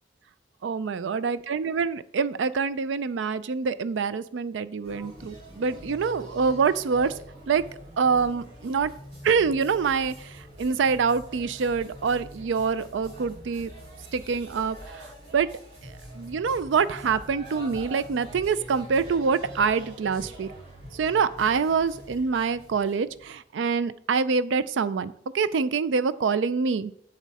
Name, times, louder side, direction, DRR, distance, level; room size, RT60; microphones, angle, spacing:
voice 1, 0.6-7.1 7.5-7.6 8.0-8.9 9.2-13.7 14.1-15.5 15.8-20.5 20.9-26.9, right 5 dB, 85° right, 15 dB, 0.4 m, -26 dB
sound 1, 4.8-23.4, right 1 dB, 65° right, 3.9 m, -44 dB
7.3 x 7.2 x 4.1 m, 0.66 s
head